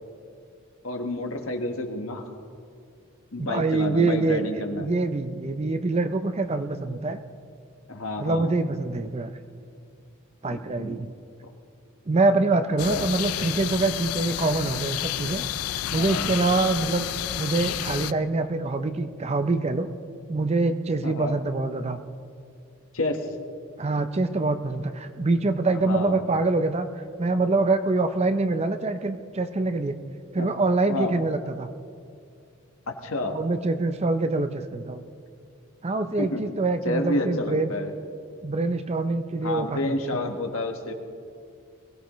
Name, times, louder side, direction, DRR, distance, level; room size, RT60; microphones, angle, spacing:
voice 1, 0.8-2.3 3.3-4.9 7.9-8.5 10.5-11.0 12.9-13.1 16.0-16.3 21.0-21.4 22.9-23.2 25.8-26.1 30.4-30.5 30.9-31.1 32.9-33.4 36.2-36.4 36.8-37.9 39.4-40.9, left 2 dB, 70° left, 4 dB, 1.4 m, -29 dB
voice 2, 3.4-4.4 4.8-7.2 8.2-9.3 10.4-11.1 12.1-15.4 15.7-17.1 17.4-19.9 20.3-22.0 23.8-30.0 30.3-31.7 33.3-35.0 35.8-37.7 38.4-40.2, right 3 dB, 30° right, 9 dB, 0.5 m, -25 dB
sound 1, 12.8-18.1, left 12 dB, 90° left, 0.4 m, -30 dB
22.0 x 16.0 x 3.1 m, 2.3 s
head